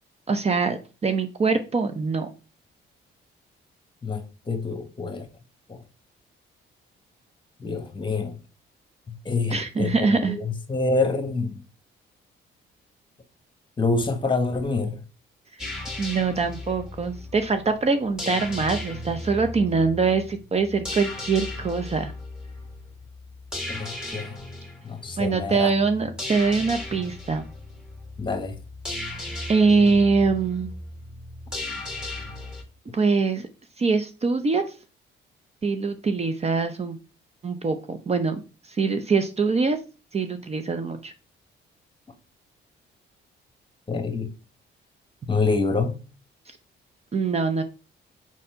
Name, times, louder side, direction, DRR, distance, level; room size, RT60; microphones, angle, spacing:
voice 1, 0.3-2.3 9.5-10.4 16.0-22.1 25.2-27.5 29.5-30.7 32.9-33.5 33.8-34.6 35.6-37.0 37.4-38.4 38.7-39.8 40.1-41.1 47.1-47.6, right 4 dB, 30° right, 0.7 m, -23 dB
voice 2, 4.0-5.3 5.7-5.8 7.6-8.4 9.2-11.6 13.8-15.0 23.7-24.4 24.8-25.7 28.2-28.6 43.9-44.3 45.3-46.0, left 3 dB, 25° left, 1.3 m, -26 dB
sound 1, 15.6-32.6, left 1 dB, 5° right, 2.3 m, -36 dB
4.8 x 4.2 x 5.5 m
cardioid pair, 90°, 20 cm